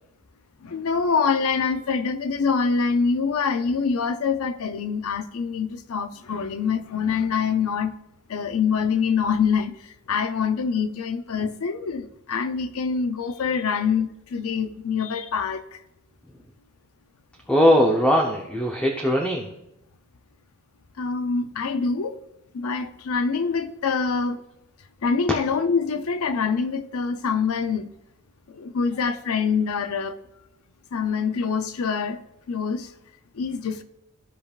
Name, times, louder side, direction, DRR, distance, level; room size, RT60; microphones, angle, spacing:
voice 1, 0.6-7.9 8.3-9.8 10.1-15.8 21.0-22.2 22.5-24.4 25.0-27.9 28.5-30.2 30.9-32.2 32.5-32.9 33.3-33.8, left 5 dB, 85° left, 0.5 m, -25 dB
voice 2, 17.5-19.5, equal, 5° left, 0.7 m, -20 dB
15.0 x 5.3 x 2.4 m
head